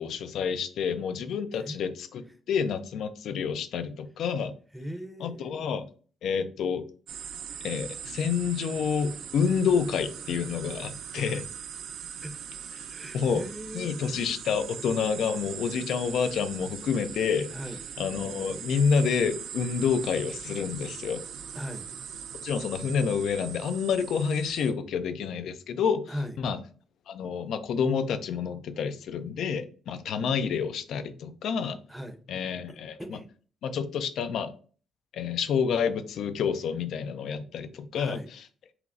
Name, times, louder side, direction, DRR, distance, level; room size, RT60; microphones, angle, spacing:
voice 1, 0.0-4.5 5.2-5.8 6.2-6.8 7.6-11.5 13.1-13.4 13.7-17.5 18.0-21.2 22.4-26.6 27.1-31.8 32.3-33.2 33.6-34.5 35.1-38.2, left 6 dB, 75° left, 11 dB, 0.4 m, -28 dB
voice 2, 4.7-5.6 11.3-11.4 12.2-12.4 12.9-14.0 17.5-17.8 21.5-21.9 26.1-26.3 31.9-32.2 33.0-33.3 38.0-38.3, equal, 5° right, 6 dB, 0.6 m, -38 dB
sound 1, 7.1-24.7, right 8 dB, 80° right, 0.4 m, -41 dB
5.7 x 2.0 x 2.5 m, 0.41 s
cardioid pair, 90°, 0 cm